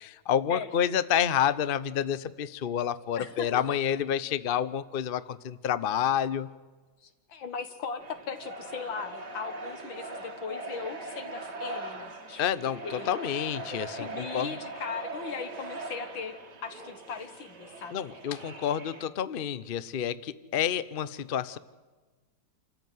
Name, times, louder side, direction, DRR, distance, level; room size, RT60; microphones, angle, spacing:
voice 1, 0.3-6.5 12.4-14.5 17.9-21.6, left 9 dB, 50° left, 16 dB, 0.6 m, -29 dB
voice 2, 3.2-3.8 7.0-12.4 12.8-13.1 13.7-16.3 16.6-18.0, left 5 dB, 85° left, 9 dB, 2.4 m, -38 dB
sound 1, 8.0-19.1, right 2 dB, 60° right, 3.0 m, -41 dB
27.5 x 14.0 x 9.4 m, 1.3 s
omnidirectional pair, 2.0 m